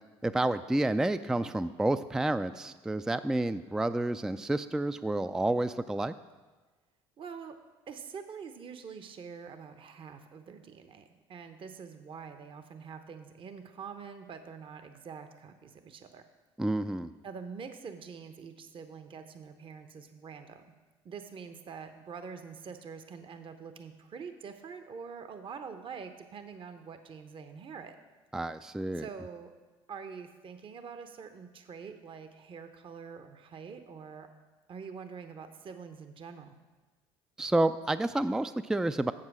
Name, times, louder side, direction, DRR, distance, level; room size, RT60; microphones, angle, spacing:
voice 1, 0.2-6.1 16.6-17.1 28.3-29.1 37.4-39.1, right 2 dB, 5° right, 12 dB, 0.3 m, -29 dB
voice 2, 7.2-7.6 7.9-16.3 17.2-20.7 21.0-28.0 29.0-29.5 29.9-34.3 34.7-36.6, right 6 dB, 45° right, 8 dB, 0.9 m, -45 dB
7.8 x 7.5 x 6.1 m, 1.3 s
hypercardioid pair, 65°, 13 cm